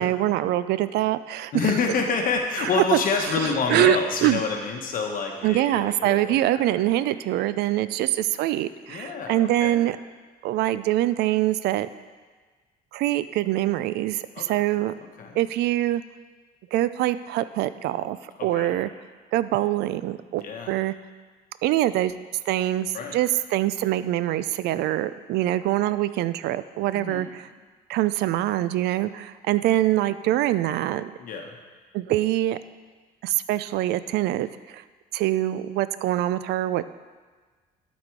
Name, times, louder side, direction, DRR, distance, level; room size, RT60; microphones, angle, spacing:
voice 1, 0.0-1.7 2.6-2.7 3.4-4.4 5.4-10.0 10.4-11.9 12.9-14.9 15.4-16.0 16.7-18.9 19.3-20.9 21.6-22.2 22.5-27.5 27.9-31.1 31.9-32.6 33.2-34.8 35.1-36.8, right 14 dB, 75° right, 14 dB, 0.4 m, -24 dB
voice 2, 1.5-6.6 8.9-9.8 14.3-14.7 15.2-15.4 18.4-18.8 20.4-20.7 22.9-23.2 26.9-27.3 31.2-31.6, left 5 dB, 55° left, 2 dB, 1.0 m, -28 dB
12.0 x 4.2 x 4.6 m, 1.4 s
cardioid pair, 110°, 17 cm